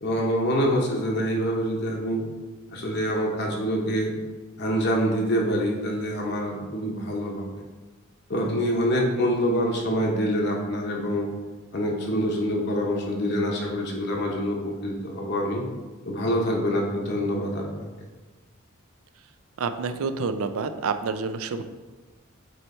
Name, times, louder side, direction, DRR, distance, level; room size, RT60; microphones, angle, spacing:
voice 1, 0.0-2.2 2.7-4.1 4.6-7.6 8.3-11.3 11.7-15.6 16.1-17.9, equal, 50° left, -1 dB, 0.8 m, -26 dB
voice 2, 19.6-21.6, right 4 dB, 75° right, 9 dB, 0.4 m, -28 dB
7.7 x 3.1 x 4.2 m, 1.3 s
head